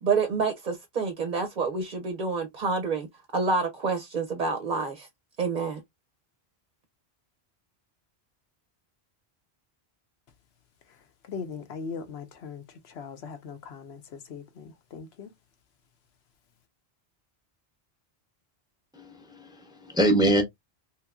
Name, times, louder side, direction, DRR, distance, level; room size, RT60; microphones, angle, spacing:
voice 1, 0.0-3.1 3.3-5.1 5.4-5.8, right 4 dB, 50° right, 0.8 m, -28 dB
voice 2, 10.9-15.3, left 5 dB, 90° left, 1.0 m, -40 dB
voice 3, 18.9-20.4, right 1 dB, 5° right, 0.7 m, -24 dB
3.2 x 3.0 x 2.3 m
omnidirectional pair, 1.0 m